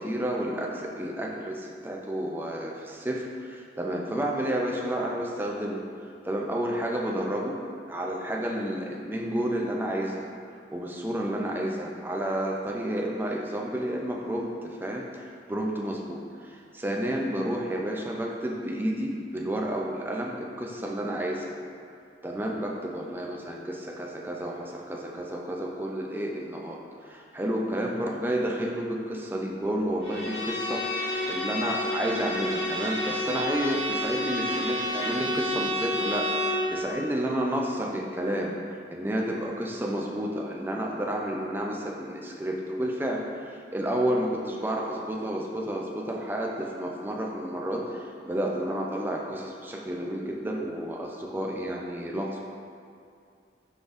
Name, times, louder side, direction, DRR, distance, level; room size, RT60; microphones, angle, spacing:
voice 1, 0.0-5.8 6.2-7.6 7.9-10.3 10.7-21.6 22.2-38.5 38.9-52.4, right 1 dB, 10° right, -1 dB, 0.4 m, -31 dB
Bowed string instrument, 30.0-36.7, left 1 dB, 75° left, 1.2 m, -30 dB
5.0 x 4.0 x 2.5 m, 2.4 s
head